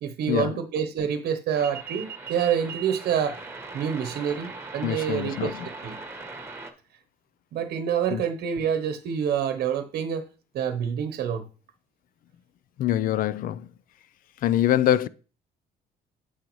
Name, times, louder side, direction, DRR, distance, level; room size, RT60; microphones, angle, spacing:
voice 1, 0.0-3.4 3.7-6.0 7.5-10.2 10.5-11.5, right 8 dB, 70° right, 0.9 m, -27 dB
sound 1, 1.5-6.7, right 4 dB, 15° right, 1.4 m, -39 dB
voice 2, 4.8-5.5 8.1-8.2 12.8-13.7 14.4-15.1, left 12 dB, 55° left, 0.5 m, -24 dB
9.2 x 6.4 x 3.1 m
cardioid pair, 110°, 17 cm